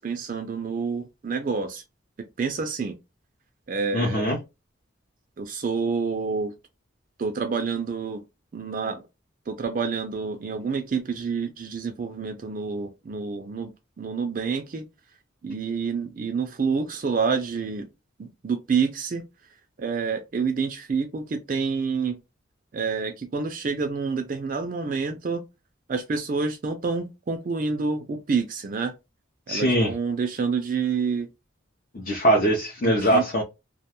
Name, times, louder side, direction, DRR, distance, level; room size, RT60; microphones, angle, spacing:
voice 1, 0.0-1.8 2.2-3.0 3.7-4.4 5.4-6.5 7.2-8.2 8.5-9.0 9.5-14.9 15.4-17.9 18.2-22.2 22.7-25.4 25.9-28.9 29.5-31.3 32.8-33.3, right 5 dB, 40° right, 0.3 m, -28 dB
voice 2, 3.9-4.4 29.5-29.9 31.9-33.4, right 1 dB, 45° left, 0.5 m, -22 dB
2.2 x 2.2 x 2.8 m
head